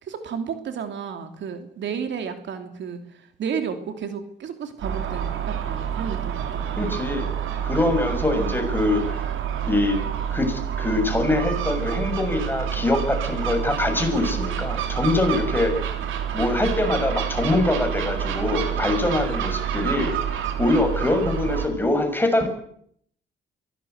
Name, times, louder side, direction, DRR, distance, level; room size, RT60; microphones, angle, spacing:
voice 1, 0.0-7.1, right 6 dB, 65° right, 7 dB, 3.1 m, -32 dB
Gull seagull, 4.8-21.7, right 9 dB, 85° right, 3.8 m, -28 dB
voice 2, 6.8-7.3 7.6-9.2 9.6-10.0 10.3-15.7 16.3-22.5, left 2 dB, 10° left, 5 dB, 6.6 m, -23 dB
23.5 x 17.5 x 8.2 m, 0.67 s
cardioid pair, 90°, 20 cm